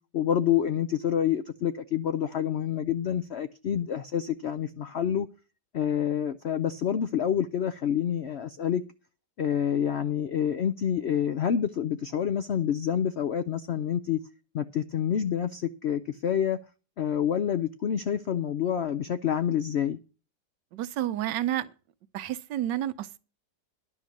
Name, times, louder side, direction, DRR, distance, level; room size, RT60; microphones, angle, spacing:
voice 1, 0.1-5.3 5.7-8.8 9.4-14.2 14.5-16.6 17.0-20.0, left 9 dB, 80° left, 0.6 m, -27 dB
voice 2, 20.7-21.7 22.1-23.2, right 12 dB, 80° right, 1.4 m, -30 dB
11.0 x 6.4 x 7.0 m
omnidirectional pair, 1.9 m